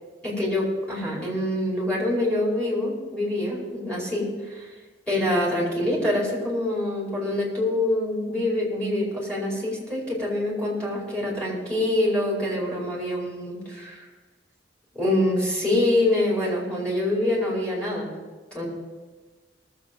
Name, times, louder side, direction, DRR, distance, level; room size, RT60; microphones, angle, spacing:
voice 1, 0.2-4.7 5.1-14.0 14.9-18.1 18.5-18.7, left 1 dB, 5° left, -6 dB, 4.9 m, -25 dB
19.0 x 7.7 x 5.3 m, 1.3 s
head